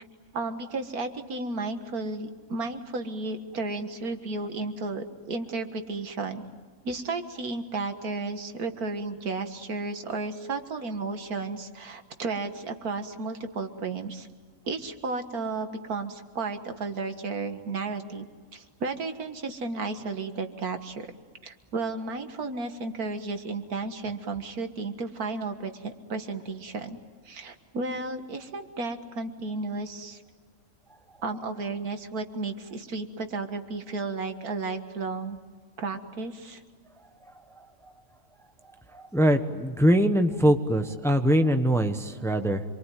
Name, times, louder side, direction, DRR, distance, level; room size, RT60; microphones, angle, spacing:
voice 1, 0.3-6.4 6.8-14.3 14.6-18.2 18.5-21.1 21.4-27.0 27.3-30.2 31.2-35.4 35.8-36.6, right 3 dB, 85° right, 7 dB, 2.1 m, -33 dB
voice 2, 38.9-42.6, equal, ahead, 7 dB, 1.1 m, -23 dB
27.0 x 23.5 x 9.3 m, 1.5 s
omnidirectional pair, 1.5 m